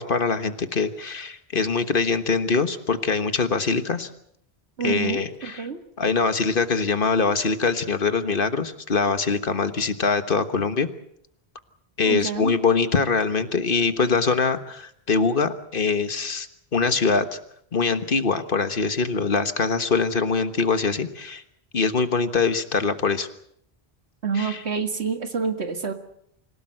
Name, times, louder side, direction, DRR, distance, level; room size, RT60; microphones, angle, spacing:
voice 1, 0.0-4.1 4.8-5.7 6.0-10.9 12.0-16.5 16.7-17.4 17.7-21.4 21.7-23.3 24.3-24.6, left 4 dB, 55° left, 10 dB, 1.5 m, -23 dB
voice 2, 4.8-5.8 12.0-12.5 24.2-25.9, right 6 dB, 85° right, 7 dB, 2.2 m, -27 dB
26.0 x 17.0 x 7.8 m, 0.70 s
omnidirectional pair, 1.1 m